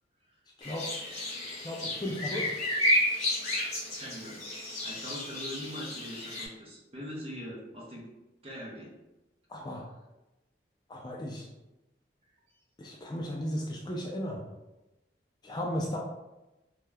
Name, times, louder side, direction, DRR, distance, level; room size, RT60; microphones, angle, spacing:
sound 1, 0.6-6.4, left 1 dB, 40° left, 0.8 m, -32 dB
voice 1, 1.4-2.5 9.5-9.8 10.9-11.5 12.8-14.4 15.4-16.0, equal, 25° left, -1 dB, 0.3 m, -35 dB
voice 2, 3.9-8.1 8.4-8.9, equal, 35° right, -3 dB, 0.7 m, -42 dB
2.6 x 2.3 x 3.2 m, 0.99 s
head